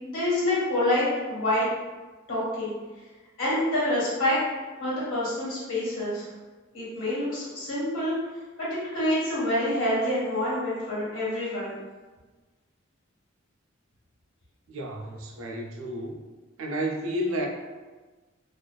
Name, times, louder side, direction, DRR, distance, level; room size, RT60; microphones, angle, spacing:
voice 1, 0.0-1.7 2.3-2.7 3.4-4.4 4.8-6.3 6.7-8.1 8.6-11.7, left 1 dB, 80° left, -8 dB, 1.2 m, -27 dB
voice 2, 14.7-16.2 16.6-17.5, equal, 80° right, 1 dB, 0.4 m, -31 dB
2.5 x 2.2 x 2.2 m, 1.3 s
head